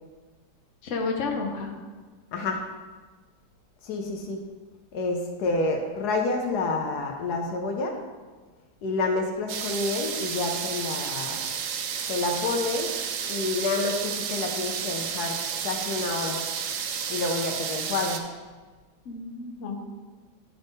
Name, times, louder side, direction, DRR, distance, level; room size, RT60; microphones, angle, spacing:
voice 1, 0.8-1.7 19.0-19.9, left 4 dB, 55° left, 2 dB, 1.0 m, -31 dB
voice 2, 3.8-4.4 4.9-8.0 8.8-11.4 12.1-12.9 13.3-15.4 15.6-16.4 17.1-18.2, left 3 dB, 75° left, 3 dB, 1.2 m, -28 dB
sound 1, 9.5-18.2, right 7 dB, 70° right, 0.8 m, -31 dB
10.0 x 3.9 x 3.5 m, 1.4 s
omnidirectional pair, 1.8 m